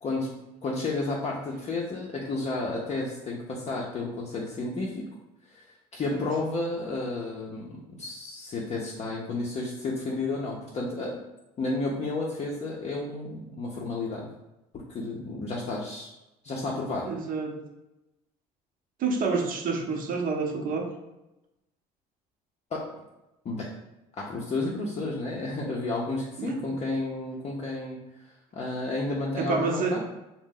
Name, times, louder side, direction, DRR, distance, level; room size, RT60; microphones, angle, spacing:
voice 1, 0.6-5.0 5.5-5.6 5.9-11.2 11.6-14.3 14.9-16.1 16.4-17.1 22.7-22.9 23.4-23.7 24.2-30.0, left 2 dB, 35° left, -3 dB, 0.5 m, -32 dB
voice 2, 17.0-17.6 19.0-20.9 26.4-26.8 29.4-30.0, right 4 dB, 50° right, 3 dB, 0.6 m, -28 dB
2.6 x 2.0 x 3.7 m, 0.95 s
supercardioid pair, 75°, 19 cm